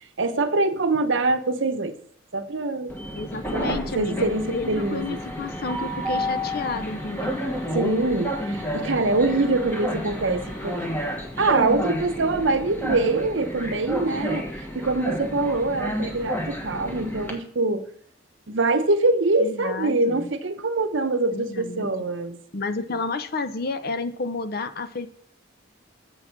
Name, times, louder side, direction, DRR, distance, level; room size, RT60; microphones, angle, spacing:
voice 1, 0.2-1.9 2.3-3.0 3.5-5.2 7.7-10.8 11.4-14.4 14.7-17.8 18.5-22.4, right 2 dB, 65° right, 9 dB, 0.8 m, -24 dB
Train, 2.9-17.3, equal, 10° left, 1.3 m, -31 dB
voice 2, 3.1-7.4 19.4-20.3 21.3-21.9 22.5-25.1, left 3 dB, 50° left, 11 dB, 0.6 m, -31 dB
7.2 x 6.2 x 5.9 m, 0.62 s
head